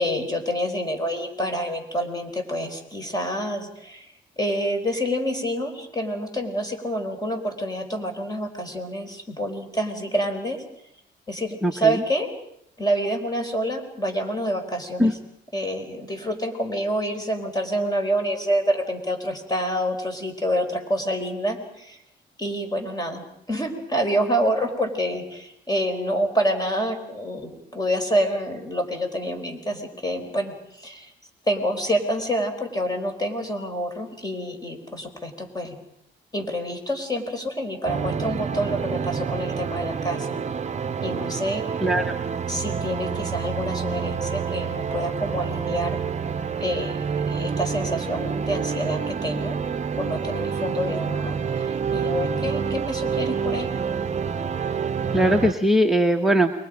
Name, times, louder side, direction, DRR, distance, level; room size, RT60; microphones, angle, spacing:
voice 1, 0.0-4.0 4.4-10.6 11.3-12.3 12.8-15.1 15.5-22.0 22.4-23.2 23.5-31.1 31.5-35.8 36.3-40.4 41.0-41.6 42.5-46.0 46.6-49.6 50.0-53.7, equal, 20° left, 5 dB, 4.7 m, -27 dB
voice 2, 11.6-12.0 15.0-15.1 41.8-42.2 55.1-56.5, equal, ahead, 6 dB, 1.4 m, -20 dB
sound 1, 37.9-55.5, right 6 dB, 35° right, 0.9 m, -28 dB
29.5 x 23.5 x 5.2 m, 0.71 s
cardioid pair, 90°, 20 cm